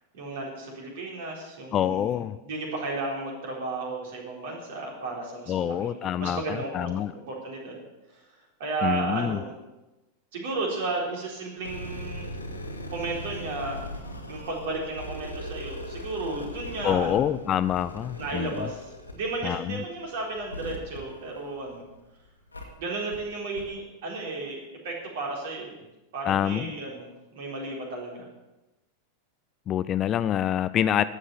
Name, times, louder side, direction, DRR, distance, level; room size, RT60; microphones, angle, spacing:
voice 1, 0.1-2.2 2.4-7.8 8.1-8.2 8.6-9.6 10.3-12.3 12.9-13.8 14.3-17.3 18.2-18.9 19.1-21.8 22.8-25.8 26.1-28.3, right 3 dB, 55° right, -1 dB, 4.0 m, -33 dB
voice 2, 1.7-2.4 5.5-7.1 8.8-9.4 16.8-18.5 19.4-19.8 26.3-26.8 29.7-31.0, left 10 dB, 30° left, 14 dB, 0.5 m, -26 dB
sound 1, 11.6-22.0 22.5-22.6 23.1-23.2 23.5-23.6, left 1 dB, 85° left, 1.9 m, -39 dB
12.5 x 8.1 x 8.6 m, 1.0 s
figure-of-eight pair, 90°, 0 cm